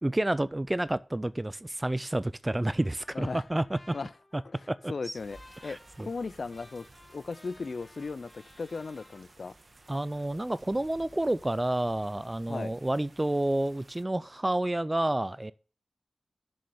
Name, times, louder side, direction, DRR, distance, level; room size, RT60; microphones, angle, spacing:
voice 1, 0.0-3.9 4.3-4.4 4.7-5.1 5.6-6.1 9.9-15.5, right 1 dB, 20° right, 0.3 m, -29 dB
Trumpet, 2.5-9.2, left 2 dB, 20° left, 2.2 m, -57 dB
voice 2, 4.9-6.9 7.1-9.5 12.5-12.8, left 4 dB, 65° left, 0.4 m, -37 dB
sound 1, 5.1-14.0, right 2 dB, 55° right, 1.5 m, -56 dB
6.9 x 6.3 x 6.8 m
wide cardioid pair, 65°, 0 cm